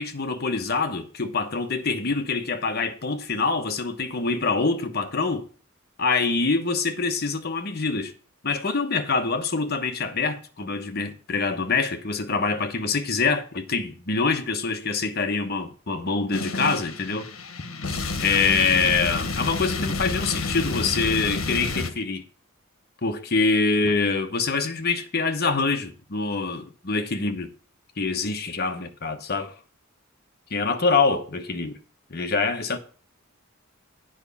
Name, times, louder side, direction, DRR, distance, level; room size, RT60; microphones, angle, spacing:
voice 1, 0.0-5.4 6.0-8.1 8.4-17.3 18.2-22.2 23.0-27.5 28.0-29.5 30.5-31.8 32.1-32.8, left 4 dB, 50° left, 1.1 m, -25 dB
sound 1, 16.3-21.9, left 3 dB, 80° left, 1.2 m, -29 dB
9.1 x 5.1 x 7.2 m
head